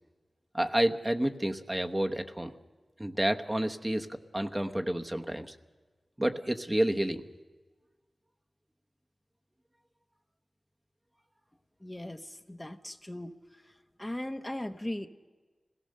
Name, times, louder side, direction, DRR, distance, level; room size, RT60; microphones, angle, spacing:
voice 1, 0.5-2.5 3.0-5.6 6.2-7.2, right 1 dB, 20° right, 5 dB, 1.1 m, -30 dB
voice 2, 11.8-13.3 14.0-15.1, left 1 dB, 20° left, 7 dB, 0.9 m, -38 dB
26.5 x 17.5 x 6.6 m, 1.3 s
wide cardioid pair, 55°, 0 cm